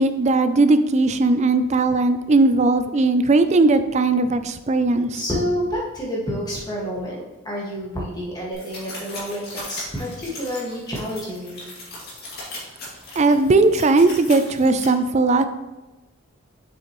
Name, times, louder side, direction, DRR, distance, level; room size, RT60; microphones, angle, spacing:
voice 1, 0.0-5.2 13.2-15.4, right 3 dB, 35° right, 10 dB, 0.4 m, -18 dB
voice 2, 5.1-11.6, equal, 20° left, -5 dB, 1.9 m, -28 dB
sound 1, 8.5-14.8, left 2 dB, 50° left, 2.4 m, -38 dB
7.1 x 6.4 x 3.1 m, 1.1 s
head